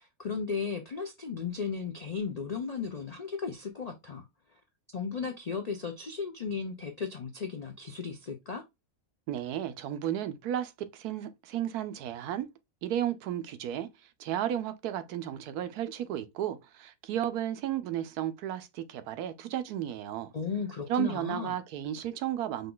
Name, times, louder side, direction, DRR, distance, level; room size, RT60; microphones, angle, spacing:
voice 1, 0.0-4.3 4.9-8.6 20.3-21.5, left 5 dB, 80° left, 0.3 m, -35 dB
voice 2, 9.3-12.5 12.8-13.9 14.2-20.3 20.9-22.7, right 11 dB, 85° right, 1.1 m, -33 dB
5.3 x 2.3 x 3.8 m
omnidirectional pair, 1.6 m